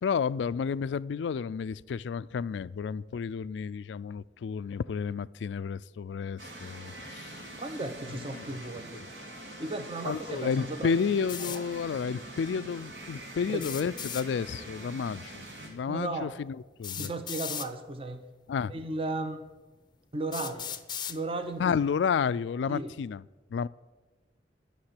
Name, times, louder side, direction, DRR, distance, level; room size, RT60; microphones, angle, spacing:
voice 1, 0.0-7.4 8.1-8.5 8.9-9.1 10.1-17.1 18.5-18.7 21.6-23.2 23.5-23.7, left 6 dB, 75° left, 0.3 m, -31 dB
sound 1, 6.4-15.7, right 1 dB, 85° right, 2.9 m, -44 dB
voice 2, 7.6-9.0 9.6-11.0 11.4-11.6 13.5-13.7 15.9-16.3 16.9-18.2 18.7-19.4 20.1-20.7 21.1-21.8 22.7-22.9, right 2 dB, 30° right, 0.7 m, -35 dB
sound 2, 11.3-11.6 13.5-14.3 15.7-15.8 16.8-17.7 18.7-18.8 19.5-19.6 20.3-21.2, left 9 dB, 25° left, 0.6 m, -37 dB
11.5 x 6.7 x 9.7 m
head